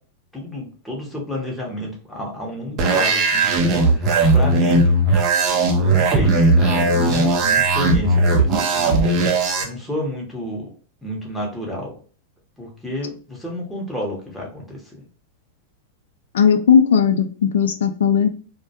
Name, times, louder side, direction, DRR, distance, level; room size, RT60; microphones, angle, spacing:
voice 1, 0.3-5.0 5.8-9.0 9.6-10.7 11.0-11.9 12.6-15.0, left 1 dB, 5° left, 1.0 m, -30 dB
sound 1, 2.8-9.6, right 2 dB, 45° right, 0.5 m, -17 dB
voice 2, 16.3-18.3, left 7 dB, 75° left, 0.3 m, -16 dB
2.2 x 2.1 x 2.7 m
hypercardioid pair, 105°, 0 cm